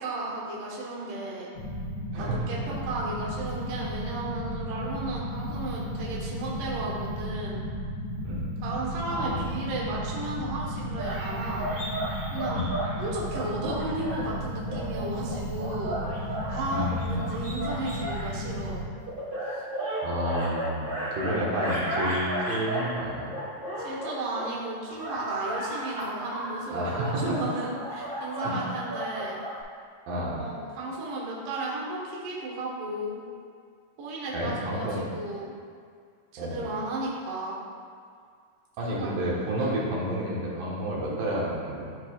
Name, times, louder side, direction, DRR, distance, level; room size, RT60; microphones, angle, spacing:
voice 1, 0.0-1.5 2.2-7.6 8.6-11.7 12.3-12.7 13.0-16.0 16.3-18.8 23.8-29.4 30.1-33.2 34.0-35.5 36.3-37.6 38.8-39.2 39.6-39.8, right 2 dB, 55° right, -5 dB, 1.8 m, -34 dB
sound 1, 1.6-18.8, equal, 70° left, 2.4 m, -34 dB
voice 2, 2.1-2.4 8.2-8.5 9.1-9.5 12.5-12.8 16.7-17.3 20.0-23.3 26.7-27.4 28.4-28.7 30.1-30.4 34.3-35.1 36.4-36.6 38.8-41.9, equal, 90° right, -5 dB, 3.1 m, -30 dB
sound 2, 11.0-12.9 13.3-14.2 14.7-18.3 19.1-22.9 23.3-24.5 24.9-29.6, right 1 dB, 40° right, 0.7 m, -34 dB
12.5 x 4.7 x 2.4 m, 2.1 s
omnidirectional pair, 3.9 m